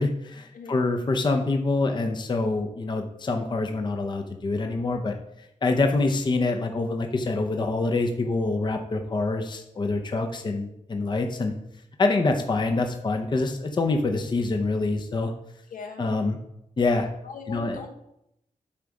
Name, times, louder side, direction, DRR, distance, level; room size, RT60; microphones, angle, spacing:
voice 1, 0.0-5.1 5.6-11.5 12.0-15.3 16.0-16.4 16.8-17.1 17.5-17.8, left 3 dB, 35° left, 4 dB, 0.7 m, -25 dB
voice 2, 15.7-16.1 17.2-17.9, left 5 dB, 80° left, 4 dB, 1.1 m, -39 dB
8.6 x 4.0 x 4.8 m, 0.81 s
wide cardioid pair, 115°, 14 cm